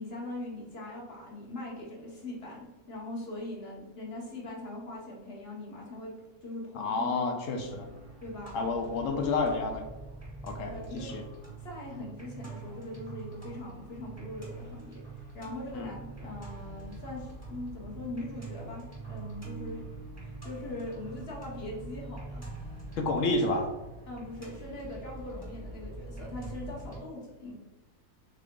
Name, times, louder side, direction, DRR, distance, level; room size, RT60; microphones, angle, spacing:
voice 1, 0.0-6.1 6.4-7.1 8.2-8.5 10.7-11.2 11.6-15.0 15.3-19.8 20.2-22.5 24.1-27.5, left 2 dB, 45° left, -2 dB, 1.0 m, -41 dB
voice 2, 6.7-7.9 8.5-9.9 10.4-11.2 15.7-15.9 23.0-23.7, left 3 dB, 65° left, 4 dB, 0.9 m, -30 dB
sound 1, 7.6-27.0, right 3 dB, 10° right, 0.9 m, -44 dB
3.8 x 3.5 x 3.6 m, 1.1 s
omnidirectional pair, 1.7 m